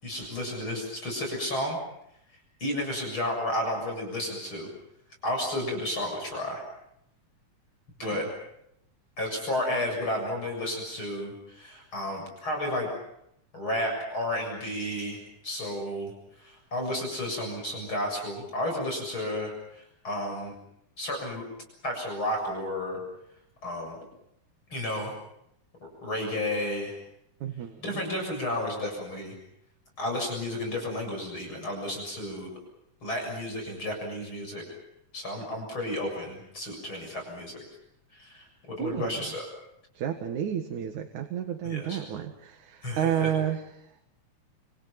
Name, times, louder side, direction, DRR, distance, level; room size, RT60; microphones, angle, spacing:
voice 1, 0.0-1.8 2.6-4.7 5.2-6.6 8.0-8.3 9.2-12.9 13.5-15.2 15.4-16.1 16.4-20.5 21.0-21.4 21.8-23.0 23.6-24.0 24.7-25.1 25.8-27.0 27.8-29.3 30.0-32.5 33.0-34.6 35.1-37.6 38.1-39.5 41.6-42.0 42.8-43.3, left 1 dB, 45° left, 1 dB, 8.1 m, -32 dB
voice 2, 27.4-27.7 38.8-39.2 40.0-43.6, right 9 dB, 85° right, 4 dB, 3.2 m, -31 dB
30.0 x 27.0 x 5.9 m, 0.77 s
omnidirectional pair, 3.3 m